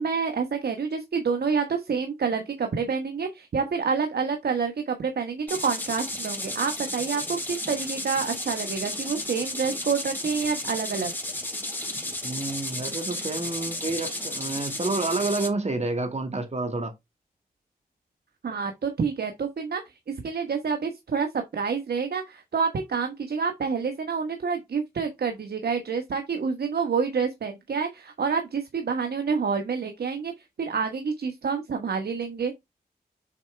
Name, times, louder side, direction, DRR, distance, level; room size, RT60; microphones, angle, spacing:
voice 1, 0.0-11.1 18.4-30.3 30.6-32.5, right 5 dB, 80° right, 1.3 m, -28 dB
sound 1, 5.5-15.5, left 1 dB, 10° left, 2.9 m, -33 dB
voice 2, 12.2-16.9, right 3 dB, 45° right, 2.2 m, -29 dB
7.3 x 4.4 x 3.4 m
cardioid pair, 55°, 16 cm